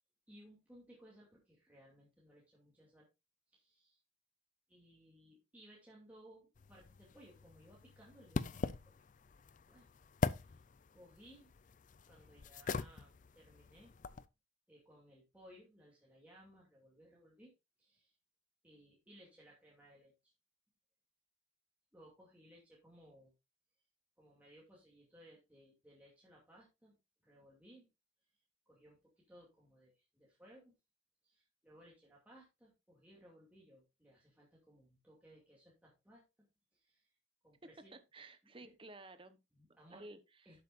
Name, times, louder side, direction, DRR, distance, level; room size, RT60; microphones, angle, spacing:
voice 1, 0.3-3.1 3.5-4.0 4.7-9.0 9.7-9.9 10.2-10.6 10.9-11.5 12.1-13.9 14.7-17.5 17.8-18.1 18.6-20.3 21.9-23.3 24.2-27.0 27.2-27.9 28.7-30.8 31.2-37.1 37.4-38.0 38.4-38.7 39.5-40.1 40.5-40.6, equal, 10° right, 2.4 m, -62 dB
sound 1, 6.6-14.3, left 4 dB, 40° left, 0.4 m, -42 dB
voice 2, 37.9-39.4 39.7-40.6, right 2 dB, 25° right, 0.9 m, -54 dB
11.5 x 7.5 x 2.5 m
head